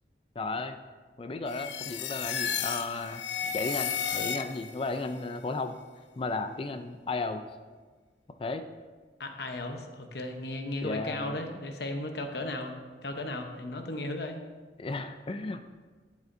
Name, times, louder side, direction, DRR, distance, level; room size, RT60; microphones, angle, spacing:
voice 1, 0.4-0.8 1.2-5.8 6.2-7.4 8.4-8.6 10.8-11.4 14.8-15.6, left 3 dB, 30° left, 9 dB, 0.4 m, -34 dB
sound 1, 1.5-4.8, left 7 dB, 85° left, 0.5 m, -33 dB
voice 2, 9.2-12.7 13.0-14.4, left 1 dB, 65° left, 5 dB, 0.9 m, -35 dB
12.0 x 7.0 x 2.6 m, 1.4 s
head